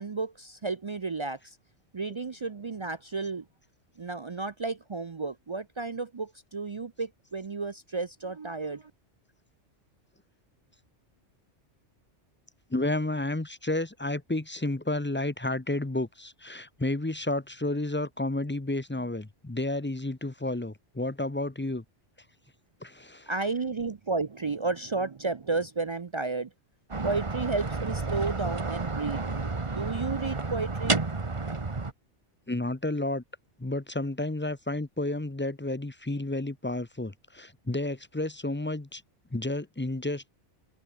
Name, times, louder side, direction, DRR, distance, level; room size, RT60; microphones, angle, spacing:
voice 1, 0.0-1.6 1.9-3.5 4.0-8.9 23.3-26.5 27.0-29.2 29.7-31.0, right 3 dB, 45° right, 0.4 m, -32 dB
voice 2, 12.7-21.8 22.8-23.3 32.5-33.2 33.6-39.0 39.3-40.3, left 2 dB, 10° left, 0.7 m, -31 dB
sound 1, 26.9-31.9, right 3 dB, 25° right, 1.3 m, -31 dB
omnidirectional pair, 1.2 m